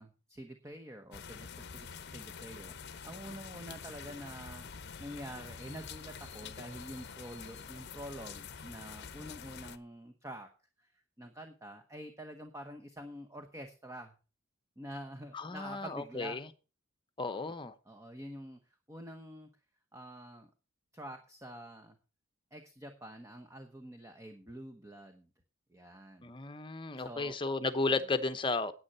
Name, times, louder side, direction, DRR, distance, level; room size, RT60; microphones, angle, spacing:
voice 1, 0.0-4.7 5.0-10.5 10.8-14.1 14.8-16.4 17.9-19.5 19.9-20.5 20.9-22.0 22.5-25.3 25.7-26.3 27.0-27.4, right 1 dB, 15° right, 1.0 m, -47 dB
sound 1, 1.1-9.8, left 6 dB, 55° left, 0.8 m, -47 dB
voice 2, 15.3-16.5 17.2-17.7 26.2-28.7, left 3 dB, 25° left, 1.0 m, -34 dB
9.6 x 8.8 x 5.6 m
head